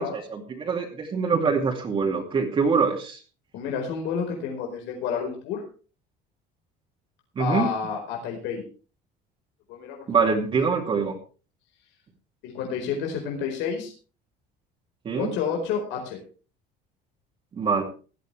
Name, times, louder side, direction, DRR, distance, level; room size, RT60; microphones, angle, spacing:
voice 1, 0.0-3.2 7.4-7.7 10.1-11.2 15.0-15.3 17.5-17.8, right 5 dB, 25° right, 0 dB, 2.4 m, -24 dB
voice 2, 3.5-5.6 7.4-8.6 9.7-10.3 12.4-13.9 15.2-16.2, left 6 dB, 75° left, 1 dB, 4.6 m, -30 dB
17.5 x 13.0 x 3.4 m, 0.36 s
cardioid pair, 160°, 19 cm